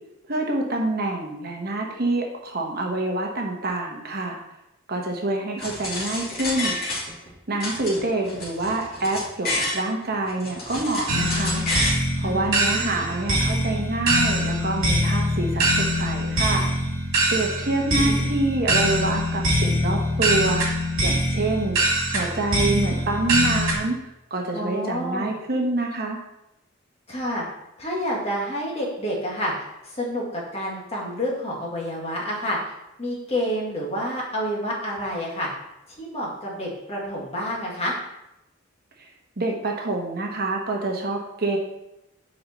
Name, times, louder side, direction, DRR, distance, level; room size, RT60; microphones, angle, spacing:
voice 1, 0.3-4.4 4.9-6.8 7.5-11.6 12.2-16.7 17.3-20.6 21.0-21.8 22.1-24.0 24.3-26.2 39.0-39.1 39.4-41.6, right 2 dB, 45° right, 1 dB, 1.1 m, -26 dB
sound 1, 5.6-7.3 7.6-9.8 10.3-12.0, left 1 dB, 45° left, 2.7 m, -29 dB
sound 2, 11.1-23.8, equal, 70° right, 2.3 m, -23 dB
voice 2, 12.2-13.1 17.6-18.3 24.5-25.3 27.1-27.4 27.8-29.5 29.8-32.6 33.0-35.5 35.9-38.0, equal, 30° left, -4 dB, 2.0 m, -29 dB
7.7 x 5.3 x 4.3 m, 0.89 s
head